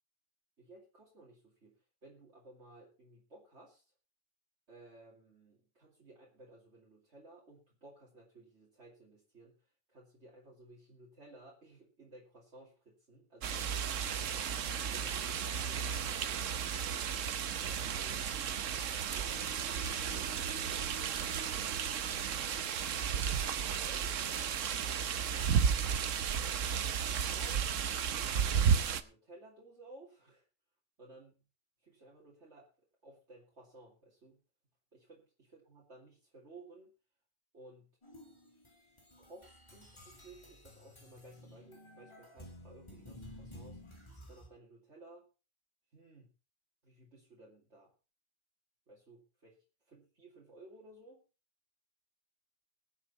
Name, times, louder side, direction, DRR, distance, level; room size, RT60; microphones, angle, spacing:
voice 1, 0.6-3.9 4.7-14.5 14.9-16.6 17.6-19.5 20.1-20.9 23.5-24.1 24.8-26.1 27.1-27.8 28.1-30.4 31.0-31.3 31.8-32.7 33.0-34.4 34.9-36.9 37.5-37.9 39.2-43.8 44.3-45.2 45.9-46.3 46.8-47.9 48.9-49.6 49.9-51.2, right 2 dB, 65° right, -4 dB, 3.0 m, -57 dB
sound 1, 13.4-29.0, right 7 dB, 90° right, 1.2 m, -33 dB
sound 2, 19.2-24.7, right 1 dB, 15° right, 1.1 m, -53 dB
sound 3, 38.0-44.5, left 1 dB, 20° left, 3.0 m, -53 dB
21.0 x 7.3 x 4.2 m, 0.33 s
omnidirectional pair, 1.3 m